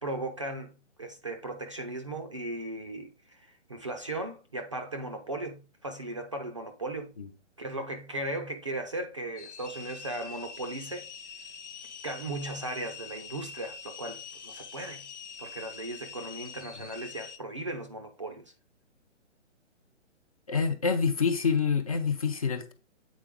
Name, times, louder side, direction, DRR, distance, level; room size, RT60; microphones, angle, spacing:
voice 1, 0.0-0.7 1.0-3.4 3.7-7.1 7.6-11.1 12.0-15.0 15.4-18.4, right 2 dB, 25° right, 0.5 m, -37 dB
sound 1, 9.4-17.4, left 6 dB, 70° left, 1.0 m, -44 dB
voice 2, 20.5-22.7, left 5 dB, 30° left, 0.6 m, -27 dB
8.3 x 4.0 x 3.6 m
hypercardioid pair, 165°, 37 cm